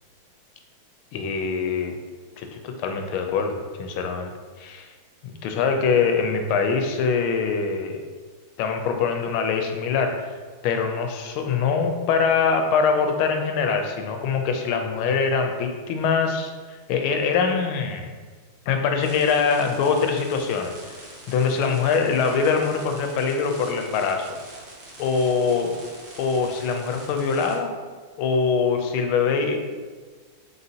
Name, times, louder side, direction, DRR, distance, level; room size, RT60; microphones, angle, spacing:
voice 1, 1.1-1.9 2.4-4.3 4.6-4.9 5.2-8.0 8.6-18.1 18.7-20.9 21.3-24.3 25.0-25.8 26.2-27.8 28.2-29.6, left 5 dB, 85° left, 4 dB, 1.4 m, -23 dB
sound 1, 19.0-27.6, right 1 dB, 55° right, 0.7 m, -44 dB
4.0 x 3.8 x 2.7 m, 1.5 s
omnidirectional pair, 2.3 m